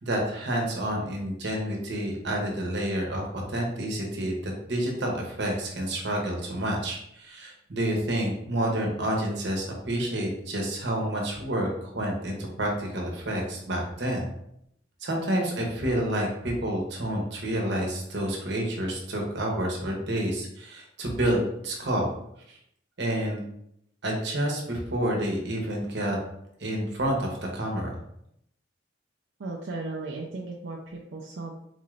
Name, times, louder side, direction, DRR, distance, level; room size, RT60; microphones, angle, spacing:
voice 1, 0.0-14.3 15.0-22.1 22.5-22.6 23.0-23.4 24.0-26.2 26.6-28.0, right 1 dB, 65° right, 0 dB, 0.9 m, -29 dB
voice 2, 29.4-31.6, right 3 dB, 85° right, -1 dB, 0.5 m, -36 dB
3.9 x 3.1 x 2.4 m, 0.75 s
head